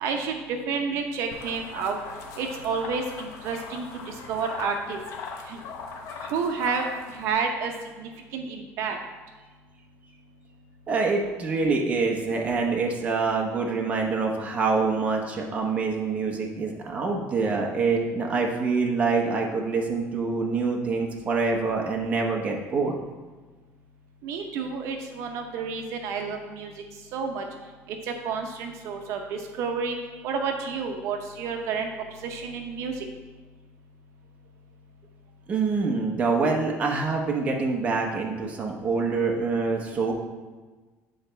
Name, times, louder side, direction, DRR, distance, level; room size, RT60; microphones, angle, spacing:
voice 1, 0.0-2.0 2.4-3.8 4.3-5.0 5.5-5.6 6.3-7.7 8.0-9.0 24.2-26.7 27.1-27.4 28.2-30.0 30.2-31.9 32.2-32.9, right 5 dB, 60° right, 3 dB, 0.7 m, -30 dB
sound 1, 1.3-7.3, left 5 dB, 60° left, 0.8 m, -40 dB
voice 2, 10.9-22.9 35.5-40.1, right 4 dB, 25° right, 0 dB, 0.8 m, -25 dB
8.8 x 4.1 x 4.4 m, 1.3 s
cardioid pair, 175°, 6 cm